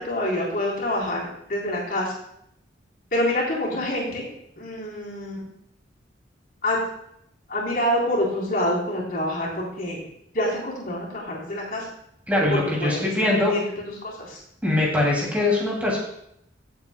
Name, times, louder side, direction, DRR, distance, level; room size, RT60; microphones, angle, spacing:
voice 1, 0.0-2.1 3.1-4.3 4.6-5.4 6.6-6.8 7.5-10.0 10.3-11.9 12.5-14.4, left 1 dB, 50° left, -3 dB, 3.7 m, -27 dB
voice 2, 12.3-13.5 14.6-16.0, left 2 dB, 10° right, -4 dB, 2.6 m, -22 dB
16.5 x 8.1 x 2.2 m, 0.75 s
head